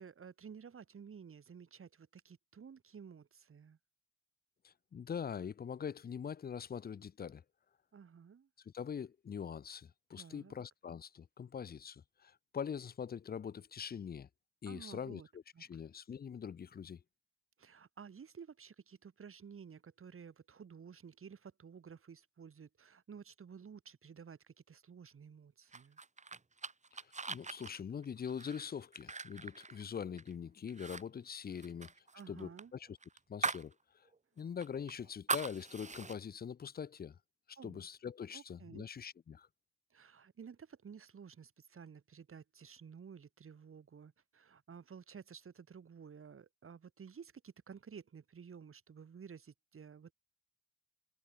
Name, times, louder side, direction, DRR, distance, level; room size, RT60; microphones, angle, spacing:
voice 1, 0.0-3.8 7.9-8.5 10.1-10.6 14.7-15.3 15.5-15.6 17.6-26.0 32.1-32.7 37.6-37.9 38.3-38.8 39.9-50.1, right 6 dB, 45° right, 3.9 m, -53 dB
voice 2, 4.6-7.4 8.7-14.3 14.6-17.0 26.9-31.9 32.3-33.0 33.3-34.1 34.4-37.2 37.5-39.5, left 7 dB, 30° left, 0.6 m, -43 dB
sound 1, 25.7-30.3 30.7-31.0 31.3-33.7 34.1-34.2 34.6-36.2, right 4 dB, 20° right, 1.6 m, -41 dB
cardioid pair, 80°, 31 cm